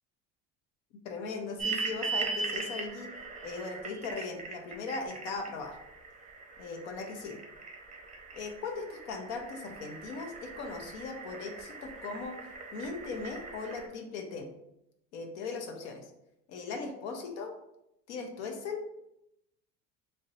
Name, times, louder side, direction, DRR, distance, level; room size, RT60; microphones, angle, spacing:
voice 1, 1.0-3.1 3.4-5.8 6.6-7.4 8.3-12.4 12.7-14.5 15.1-16.0 16.5-17.5 18.1-18.8, left 4 dB, 90° left, 3 dB, 0.6 m, -38 dB
sound 1, 1.6-13.9, right 4 dB, 25° right, 0.6 m, -40 dB
2.6 x 2.1 x 4.0 m, 0.84 s
supercardioid pair, 95°, 34 cm